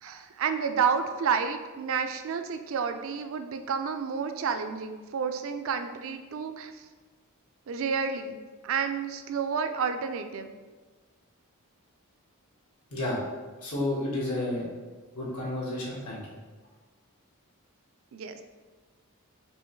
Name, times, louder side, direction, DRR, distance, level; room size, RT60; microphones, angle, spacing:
voice 1, 0.0-6.7 7.7-8.4 8.6-10.5 18.1-18.4, right 6 dB, 60° right, 8 dB, 0.4 m, -30 dB
voice 2, 12.9-13.2 13.6-14.7 15.1-16.2, left 1 dB, 85° left, -5 dB, 1.5 m, -31 dB
5.4 x 2.9 x 3.1 m, 1.3 s
head